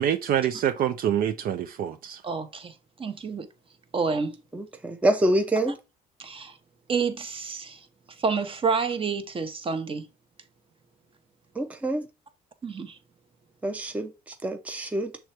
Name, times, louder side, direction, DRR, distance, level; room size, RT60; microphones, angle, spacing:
voice 1, 0.0-2.2, right 10 dB, 60° right, 0.5 m, -26 dB
voice 2, 2.2-3.5 3.9-4.4 6.2-6.6 6.9-7.9 8.2-10.1 12.6-13.0, right 5 dB, 30° right, 1.0 m, -29 dB
voice 3, 4.5-5.8 11.6-12.1 13.6-15.1, right 1 dB, 10° right, 0.6 m, -26 dB
6.3 x 3.5 x 4.3 m
cardioid pair, 110°, 17 cm